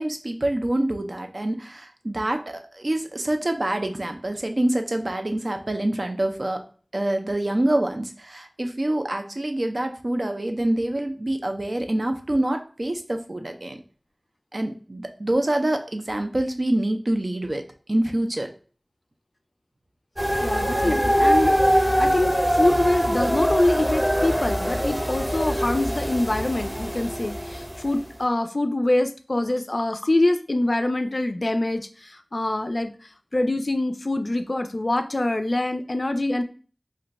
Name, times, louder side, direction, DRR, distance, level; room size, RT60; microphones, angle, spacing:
voice 1, 0.0-6.6 6.9-13.8 14.5-17.6 17.9-18.5 20.8-21.0, right 1 dB, 65° right, 5 dB, 0.4 m, -26 dB
sound 1, 20.2-28.0, equal, 15° right, 0.7 m, -23 dB
voice 2, 20.4-32.9 33.3-36.4, left 1 dB, 70° left, 7 dB, 0.3 m, -25 dB
2.5 x 2.2 x 4.0 m, 0.39 s
wide cardioid pair, 40°, 0 cm